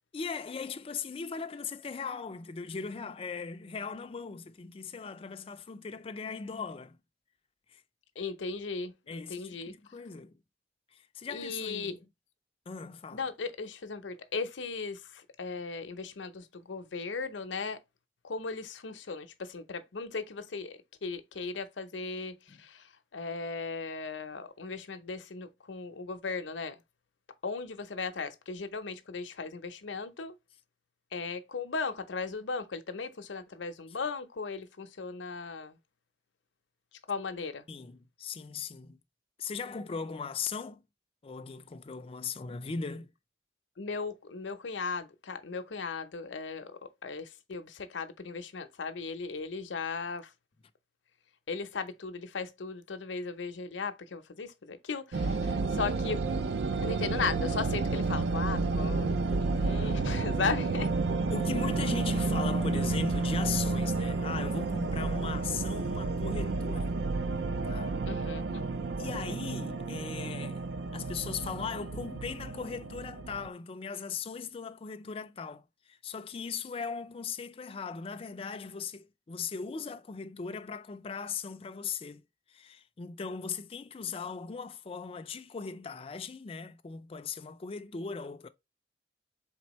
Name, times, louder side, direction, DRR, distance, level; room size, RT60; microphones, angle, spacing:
voice 1, 0.1-7.0 7.7-7.8 9.1-10.4 10.9-12.0 12.7-13.2 22.5-22.6 37.7-39.0 39.4-40.8 41.2-43.1 61.3-67.0 67.6-68.0 69.0-70.6 70.9-82.2 82.5-88.5, left 5 dB, 30° left, 0.4 m, -38 dB
voice 2, 8.2-9.7 11.3-12.0 13.1-17.8 18.2-26.8 27.4-30.4 31.1-35.8 37.1-37.6 43.8-50.3 51.5-56.2 56.8-60.9 68.1-68.7, left 4 dB, 75° left, 0.7 m, -37 dB
sound 1, 55.1-73.5, right 3 dB, 60° right, 0.4 m, -31 dB
4.4 x 3.4 x 3.0 m
head